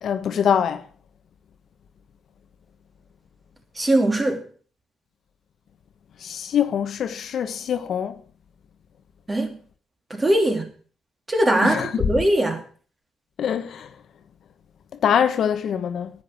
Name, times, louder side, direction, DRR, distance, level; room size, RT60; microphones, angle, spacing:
voice 1, 0.0-0.8 6.2-8.1 11.6-12.1 13.4-13.9 15.0-16.1, left 8 dB, 65° left, 1.2 m, -23 dB
voice 2, 3.8-4.4 9.3-9.5 10.1-10.7 11.3-12.6, right 1 dB, 20° right, 3.0 m, -21 dB
10.0 x 9.2 x 7.5 m
cardioid pair, 90°, 0 cm